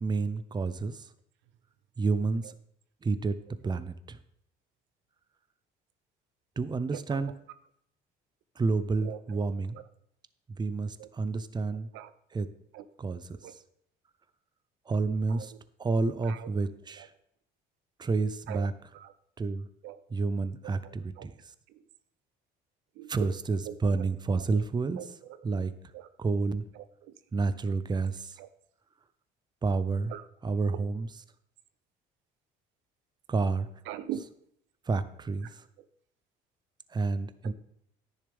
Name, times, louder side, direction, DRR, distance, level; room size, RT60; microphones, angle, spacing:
voice 1, 0.0-0.9 2.0-2.4 3.0-3.4 3.6-4.2 6.6-7.3 8.6-9.8 10.6-11.9 12.3-12.5 13.0-13.2 14.9-15.5 15.8-17.1 18.0-18.7 19.4-19.6 20.1-21.3 23.1-25.0 25.4-25.7 26.2-26.6 27.3-28.3 29.6-30.1 30.4-31.1 33.3-33.7 34.9-35.5 36.9-37.5, right 4 dB, 20° right, 0.7 m, -29 dB
voice 2, 6.9-7.3 9.0-9.4 9.7-9.8 11.0-11.1 11.9-12.1 12.7-12.9 13.4-13.6 15.3-15.6 16.2-16.5 17.0-17.1 18.5-18.7 18.9-19.1 19.8-20.0 20.6-21.3 21.7-21.8 23.0-23.1 23.6-24.1 25.0-25.4 25.9-26.1 26.7-27.2 28.4-28.5 30.1-30.3 33.9-34.3 35.4-35.5 37.4-37.5, right 11 dB, 75° right, 0.7 m, -42 dB
10.5 x 10.0 x 3.6 m
supercardioid pair, 90°, 19 cm